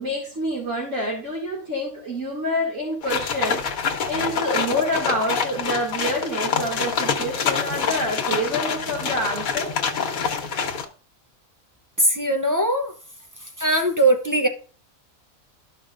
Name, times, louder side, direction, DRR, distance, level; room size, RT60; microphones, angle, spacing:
voice 1, 0.0-3.6 4.1-9.7, equal, 60° right, 2.7 m, -27 dB
sound 1, 3.0-10.9, left 6 dB, 85° left, 1.5 m, -26 dB
voice 2, 12.0-12.9 13.6-14.5, right 1 dB, 20° right, 0.5 m, -20 dB
13.0 x 5.3 x 2.5 m
omnidirectional pair, 1.4 m